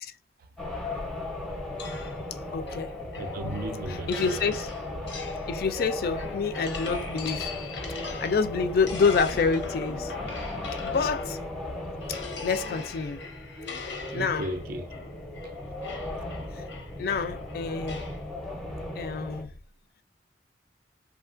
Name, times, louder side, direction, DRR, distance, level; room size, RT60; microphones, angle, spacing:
sound 1, 0.6-19.4, left 2 dB, ahead, 0.5 m, -36 dB
sound 2, 1.8-11.6 12.0-18.2, left 5 dB, 80° left, 0.7 m, -42 dB
voice 1, 2.5-2.9 3.9-4.7 5.5-7.5 8.2-10.1 10.8-11.4 12.1-13.2 14.1-14.5 16.5-16.6 17.0-18.0 19.0-19.5, left 5 dB, 55° left, 0.3 m, -27 dB
voice 2, 3.2-4.6 14.1-14.9, right 1 dB, 50° right, 0.3 m, -35 dB
3.0 x 2.2 x 2.4 m
head